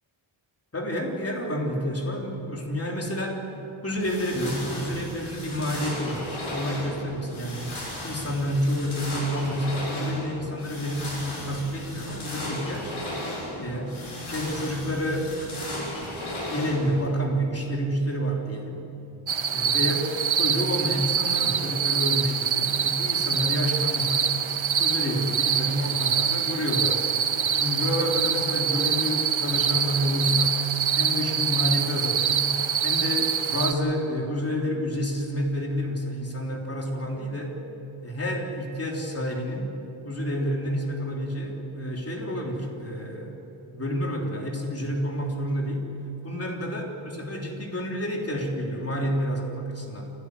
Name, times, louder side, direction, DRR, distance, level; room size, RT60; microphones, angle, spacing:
voice 1, 0.7-3.4 3.8-7.7 8.0-13.0 13.6-14.0 14.3-15.3 16.4-18.8 19.5-20.0 20.4-24.3 24.8-27.1 27.5-30.6 31.0-32.3 32.8-37.6 38.0-39.7 40.0-43.4 43.7-45.9 46.2-50.1, equal, 30° left, 0 dB, 3.5 m, -29 dB
sound 1, 3.9-17.1, left 1 dB, 75° left, 6.9 m, -35 dB
sound 2, 19.3-33.7, right 7 dB, 70° right, 1.3 m, -25 dB
28.5 x 13.0 x 9.6 m, 2.9 s
wide cardioid pair, 145°, 48 cm